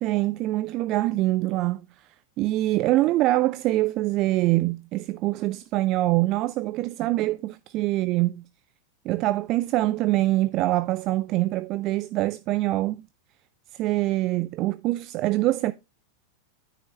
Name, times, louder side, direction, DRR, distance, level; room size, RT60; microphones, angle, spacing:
voice 1, 0.0-1.8 2.4-8.4 9.0-13.1 13.7-15.7, right 17 dB, 40° right, 0.4 m, -24 dB
9.8 x 6.4 x 3.1 m
figure-of-eight pair, 90°, 0 cm